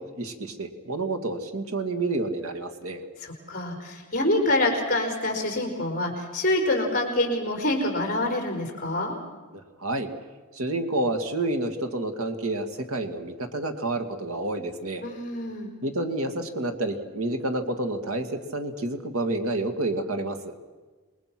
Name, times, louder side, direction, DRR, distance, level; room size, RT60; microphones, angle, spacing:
voice 1, 0.0-3.0 9.5-10.1 10.5-15.0 15.8-20.5, right 2 dB, 80° right, 7 dB, 2.1 m, -29 dB
voice 2, 3.2-9.1 15.0-15.7, left 1 dB, 40° left, 2 dB, 4.5 m, -26 dB
27.5 x 22.0 x 6.1 m, 1.3 s
head